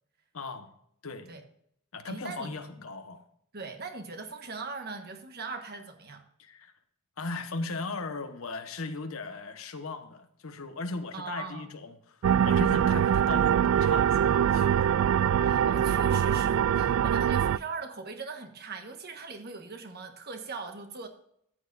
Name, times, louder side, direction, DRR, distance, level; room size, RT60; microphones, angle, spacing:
voice 1, 0.3-0.7 1.0-1.3 1.9-3.2 6.4-6.7 7.2-14.9, left 3 dB, 85° left, 7 dB, 1.2 m, -38 dB
voice 2, 2.1-2.5 3.5-6.2 11.1-11.7 15.4-21.1, right 4 dB, 50° right, 5 dB, 1.3 m, -40 dB
sound 1, 12.2-17.6, right 9 dB, 80° right, 0.3 m, -23 dB
14.0 x 9.3 x 2.6 m, 0.70 s
head